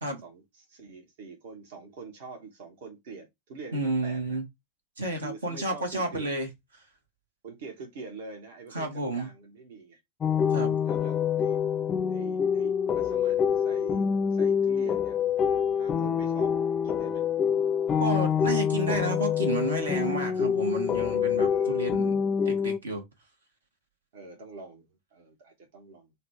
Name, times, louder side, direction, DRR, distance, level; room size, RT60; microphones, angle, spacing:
voice 1, 0.2-4.4 5.2-6.3 7.4-10.0 10.8-11.6 12.1-15.2 15.7-16.5 16.8-17.2 21.5-22.0 22.4-22.6 24.1-26.1, right 4 dB, 55° right, 1.1 m, -45 dB
voice 2, 3.7-4.4 5.0-6.5 8.7-9.3 10.5-10.8 18.0-23.0, right 2 dB, 75° right, 1.2 m, -31 dB
sound 1, 10.2-22.8, left 7 dB, 25° left, 0.4 m, -26 dB
4.0 x 2.3 x 4.3 m
figure-of-eight pair, 90°, 0 cm